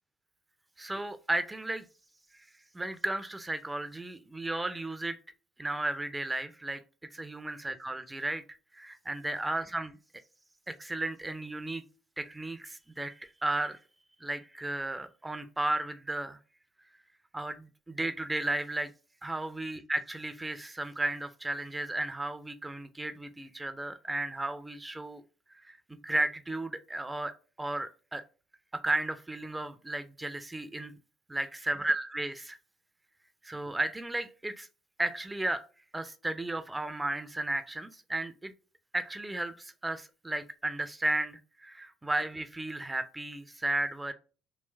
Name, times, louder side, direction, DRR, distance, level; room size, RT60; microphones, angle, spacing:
voice 1, 0.8-1.9 2.3-2.4 2.7-5.2 5.6-6.8 7.1-8.4 8.7-10.0 10.7-11.8 12.2-13.8 14.2-16.4 17.3-18.9 19.2-25.2 25.5-28.2 28.7-30.9 31.3-32.6 33.4-34.7 35.0-35.6 35.9-38.5 38.9-44.1, right 2 dB, 15° right, 0.4 m, -34 dB
3.1 x 3.0 x 3.3 m
figure-of-eight pair, 55°, 0 cm